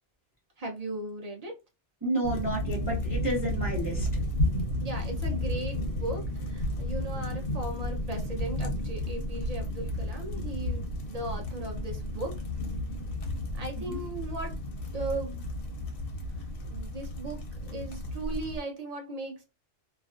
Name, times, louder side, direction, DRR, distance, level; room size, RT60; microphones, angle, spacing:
voice 1, 0.6-1.6 4.8-12.4 13.5-14.6 14.9-15.4 16.4-19.5, right 2 dB, 45° right, 0.5 m, -37 dB
voice 2, 2.0-4.1 13.8-14.0, right 1 dB, 20° right, 0.8 m, -31 dB
sound 1, 2.2-18.6, left 1 dB, 55° left, 0.7 m, -32 dB
2.4 x 2.2 x 2.3 m
omnidirectional pair, 1.3 m